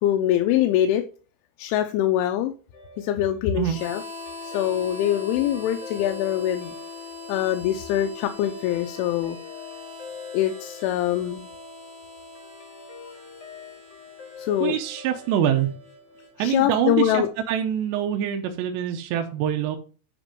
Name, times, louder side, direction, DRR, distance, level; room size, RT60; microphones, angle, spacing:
voice 1, 0.0-1.0 1.6-2.5 3.0-4.0 4.4-6.7 7.3-9.4 10.3-11.5 14.4-14.8 16.4-17.3, left 11 dB, 90° left, 5 dB, 3.1 m, -23 dB
Guitar, 2.7-17.3, left 4 dB, 45° left, 2.1 m, -45 dB
Harmonica, 3.7-16.3, left 3 dB, 25° right, 1.2 m, -42 dB
voice 2, 14.6-15.7 16.4-19.8, right 10 dB, 75° right, 4 dB, 2.9 m, -25 dB
9.1 x 5.3 x 5.1 m, 0.37 s
omnidirectional pair, 5.4 m